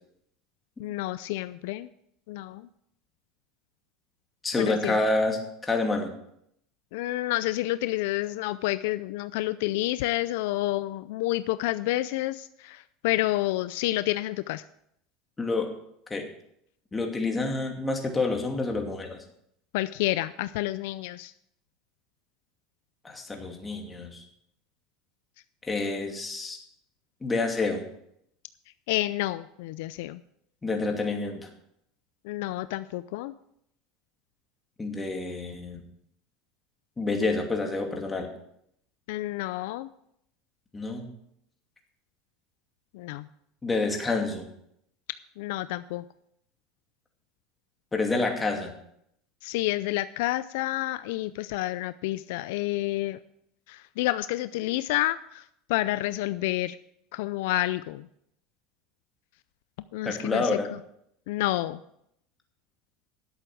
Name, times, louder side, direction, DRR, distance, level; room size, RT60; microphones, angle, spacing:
voice 1, 0.8-1.9 2.3-2.7 4.6-5.0 6.9-14.6 19.7-21.3 28.9-30.2 32.2-33.3 39.1-39.9 42.9-43.3 45.4-46.0 49.4-53.2 53.7-55.4 55.7-56.8 57.1-58.1 59.9-60.5 61.3-61.8, left 16 dB, 75° left, 14 dB, 0.4 m, -29 dB
voice 2, 4.4-6.1 15.4-15.7 16.1-16.2 16.9-19.2 23.0-24.2 25.7-26.6 27.2-27.8 30.6-31.5 34.8-35.8 37.0-38.3 40.7-41.1 43.6-44.5 47.9-48.7 60.0-60.7, left 3 dB, 15° left, 2 dB, 2.5 m, -28 dB
11.5 x 8.1 x 6.2 m, 0.74 s
supercardioid pair, 110°, 0 cm